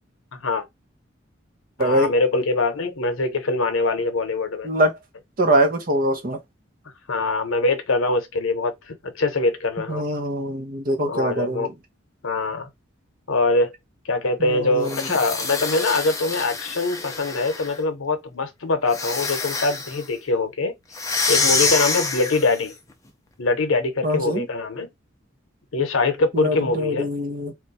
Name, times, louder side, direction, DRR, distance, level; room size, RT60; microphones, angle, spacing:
voice 1, 0.3-0.6 1.8-4.7 7.1-10.1 11.0-11.7 12.2-12.7 13.3-13.7 14.0-20.7 21.3-22.7 23.4-24.9 25.7-27.1, left 3 dB, 85° left, 0.8 m, -23 dB
voice 2, 1.8-2.1 4.6-5.0 5.4-6.4 9.9-11.7 14.4-15.0 24.0-24.5 26.3-27.5, right 1 dB, 45° right, 0.7 m, -23 dB
sound 1, 14.8-17.8 18.9-20.0 20.9-22.6, left 3 dB, 15° left, 0.5 m, -26 dB
2.4 x 2.2 x 4.0 m
head